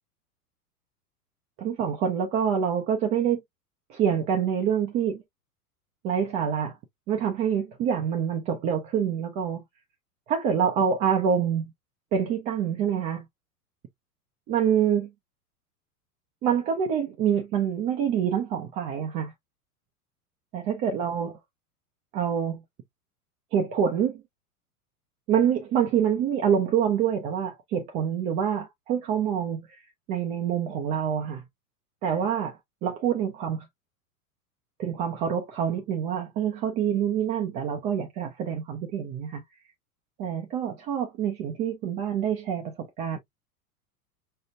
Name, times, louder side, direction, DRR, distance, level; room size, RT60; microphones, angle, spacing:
voice 1, 1.6-3.4 3.9-5.2 6.0-6.8 7.1-9.6 10.3-11.7 12.1-13.2 14.5-15.1 16.4-19.3 20.5-21.4 22.1-22.6 23.5-24.2 25.3-29.7 30.1-31.4 32.0-32.6 32.8-33.7 34.8-39.4 40.2-43.2, right 8 dB, 15° right, 0.4 m, -26 dB
4.9 x 2.1 x 2.7 m
figure-of-eight pair, 90°, 46 cm